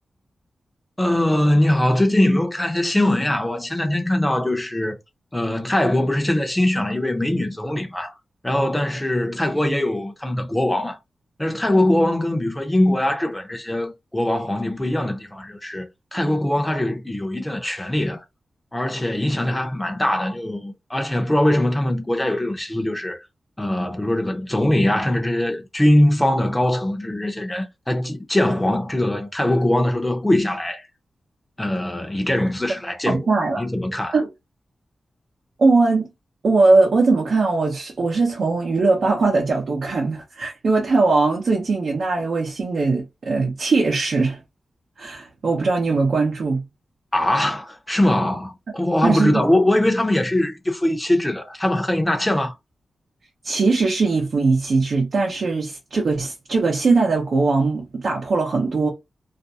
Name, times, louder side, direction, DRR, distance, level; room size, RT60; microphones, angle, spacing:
voice 1, 1.0-5.0 5.3-8.1 8.4-11.0 11.4-15.9 16.1-18.2 18.7-23.2 23.6-30.8 31.6-33.3 33.6-34.2 47.1-52.5, left 1 dB, 10° left, 0.7 m, -21 dB
voice 2, 33.1-33.6 34.1-34.3 35.6-36.1 36.4-44.4 45.0-46.6 49.0-49.4 53.4-58.9, right 3 dB, 60° right, 0.8 m, -20 dB
2.5 x 2.1 x 2.7 m
wide cardioid pair, 100°, 0 cm